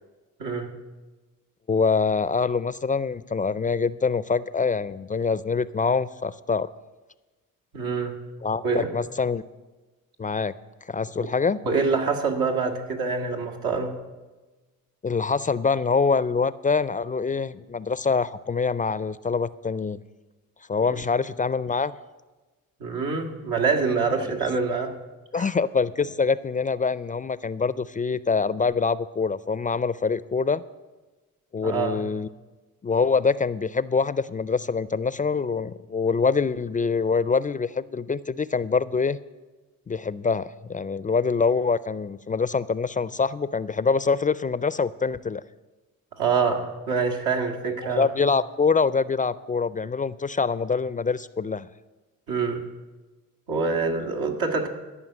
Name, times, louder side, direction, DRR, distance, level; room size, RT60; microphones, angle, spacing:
voice 1, 0.4-0.7 7.7-8.2 8.6-8.9 11.2-11.3 11.6-14.0 20.9-21.0 22.8-25.0 25.3-25.5 31.6-32.0 46.2-48.1 52.3-52.7 53.5-54.7, right 5 dB, 85° right, 2 dB, 1.7 m, -25 dB
voice 2, 1.7-6.7 8.4-9.4 10.2-10.5 10.9-11.6 15.0-20.0 20.7-21.9 25.3-30.6 31.5-32.3 32.8-39.2 39.9-45.4 47.8-51.7, left 5 dB, 25° left, 17 dB, 0.4 m, -25 dB
13.5 x 5.7 x 9.1 m, 1.2 s
cardioid pair, 70°, 34 cm